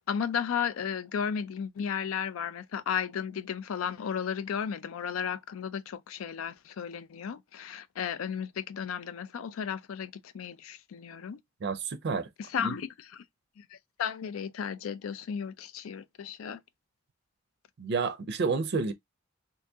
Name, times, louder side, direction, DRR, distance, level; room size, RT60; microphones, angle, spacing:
voice 1, 0.1-11.4 12.4-13.2 13.6-16.6, left 7 dB, 80° left, 0.4 m, -34 dB
voice 2, 11.6-12.3 12.6-12.7 17.8-18.9, right 4 dB, 55° right, 0.4 m, -30 dB
2.8 x 2.7 x 3.4 m
head